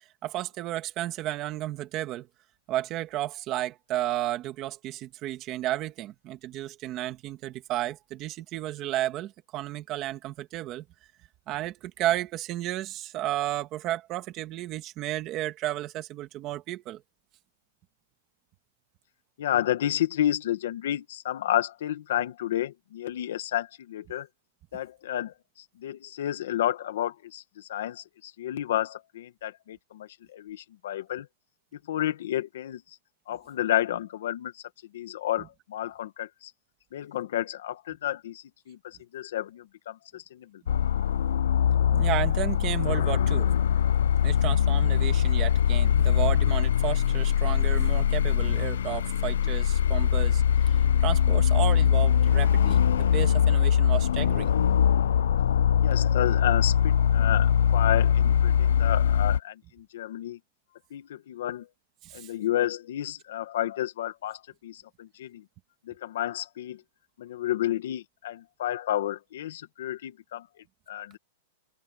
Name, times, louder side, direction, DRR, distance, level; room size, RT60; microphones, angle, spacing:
voice 1, 0.2-2.3 2.7-10.9 11.5-17.0 35.4-35.5 41.9-43.5 44.2-54.5 62.0-62.3, right 14 dB, 20° right, 1.8 m, -33 dB
voice 2, 19.4-24.3 24.7-31.3 31.9-32.8 33.3-34.6 34.9-36.5 36.9-40.5 55.8-60.4 60.9-61.7 62.1-65.4 65.9-66.8 67.2-70.5 70.9-71.2, left 12 dB, 55° left, 1.7 m, -31 dB
sound 1, 40.7-59.4, left 8 dB, 80° left, 0.4 m, -22 dB
supercardioid pair, 180°, 0 cm